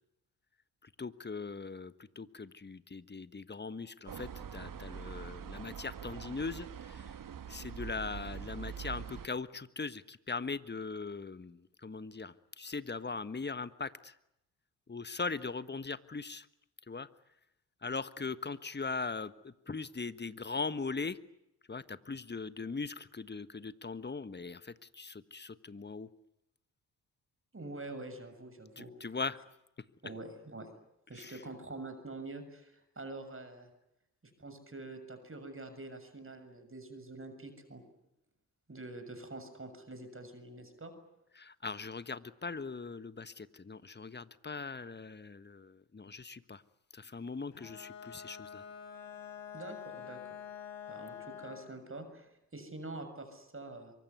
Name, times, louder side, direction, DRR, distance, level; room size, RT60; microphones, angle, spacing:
voice 1, 0.8-7.1 7.5-14.1 14.9-16.5 16.9-17.1 17.8-21.2 21.7-26.1 28.8-29.4 31.2-31.4 41.4-46.6 46.9-48.6, left 4 dB, 25° left, 14 dB, 1.4 m, -40 dB
sound 1, 4.1-9.3, right 7 dB, 45° right, 1.5 m, -44 dB
voice 2, 27.5-28.9 30.0-30.7 31.1-33.7 34.4-37.8 38.7-40.9 49.5-50.4 50.9-53.9, right 2 dB, 30° right, 8 dB, 7.1 m, -46 dB
Bowed string instrument, 47.5-51.8, left 8 dB, 80° left, 4.3 m, -47 dB
24.0 x 23.5 x 9.6 m, 0.84 s
hypercardioid pair, 40°, 45 cm